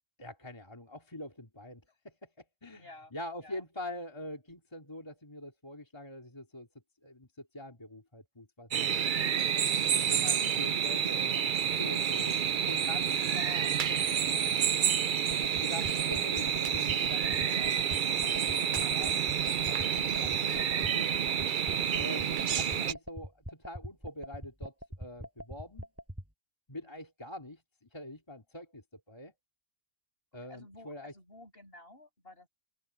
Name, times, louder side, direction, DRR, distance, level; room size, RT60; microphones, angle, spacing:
voice 1, 0.2-6.7 7.0-9.2 10.0-12.4 12.7-14.6 15.6-17.9 18.2-21.1 22.0-25.9 26.7-29.3 30.3-31.1, left 1 dB, 25° left, 2.6 m, -45 dB
voice 2, 2.7-3.6 10.0-10.3 30.3-32.5, left 2 dB, 55° left, 8.4 m, -54 dB
sound 1, 8.7-22.9, right 8 dB, 55° right, 0.7 m, -29 dB
sound 2, 15.3-26.2, equal, 10° right, 5.7 m, -42 dB
open air
omnidirectional pair, 1.2 m